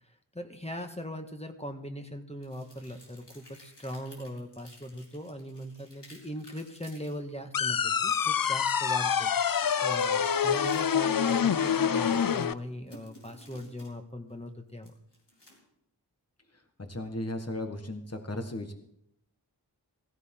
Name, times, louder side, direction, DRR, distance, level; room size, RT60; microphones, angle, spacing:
voice 1, 0.3-14.9, equal, 15° left, 5 dB, 1.7 m, -40 dB
sound 1, 0.8-0.9 2.4-7.2 8.0-8.5 9.6-11.1 12.0-13.9 14.3-15.7, left 1 dB, 90° left, 4.3 m, -55 dB
sound 2, 7.5-12.5, left 7 dB, 55° left, 0.5 m, -26 dB
voice 2, 16.9-18.7, left 1 dB, 35° left, 5 dB, 1.6 m, -35 dB
16.5 x 16.0 x 3.8 m, 0.76 s
wide cardioid pair, 40°, 41 cm